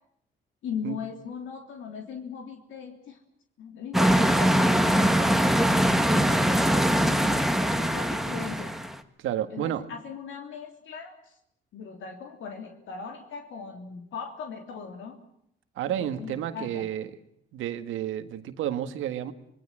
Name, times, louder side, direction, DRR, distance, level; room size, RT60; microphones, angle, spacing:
voice 1, 0.6-3.2 3.6-5.8 6.1-8.7 9.5-11.4 11.7-15.2 16.0-16.9, left 6 dB, 75° left, 4 dB, 3.3 m, -39 dB
sound 1, 3.9-9.0, equal, ahead, 1.7 m, -22 dB
voice 2, 9.2-9.8 15.8-17.1 17.5-19.3, right 11 dB, 90° right, 10 dB, 1.8 m, -31 dB
26.0 x 21.0 x 7.6 m, 0.72 s
cardioid pair, 90°, 20 cm